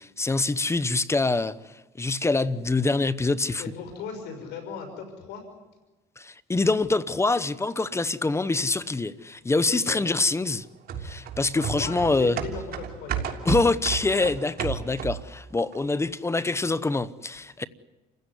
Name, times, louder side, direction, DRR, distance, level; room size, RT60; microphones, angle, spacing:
voice 1, 0.0-1.6 2.0-3.6 6.2-10.6 11.0-12.4 13.4-17.6, left 3 dB, 15° left, 0.9 m, -25 dB
voice 2, 3.6-5.5 9.7-10.0 11.4-13.4, left 5 dB, 85° left, 6.2 m, -38 dB
sound 1, 10.9-15.4 15.7-15.8, right 8 dB, 65° right, 3.2 m, -32 dB
29.0 x 16.0 x 10.0 m
cardioid pair, 110°, 17 cm